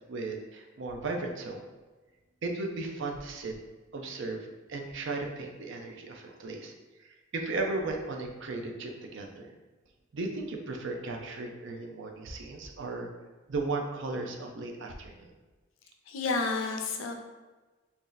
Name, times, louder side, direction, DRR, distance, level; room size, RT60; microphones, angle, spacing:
voice 1, 0.1-1.6 2.4-3.5 3.9-4.4 4.7-6.7 7.3-9.5 10.1-13.1 13.5-15.3, right 3 dB, 65° right, 3 dB, 0.5 m, -35 dB
voice 2, 16.1-17.1, left 3 dB, 75° left, 4 dB, 0.5 m, -30 dB
3.1 x 2.8 x 3.8 m, 1.3 s
head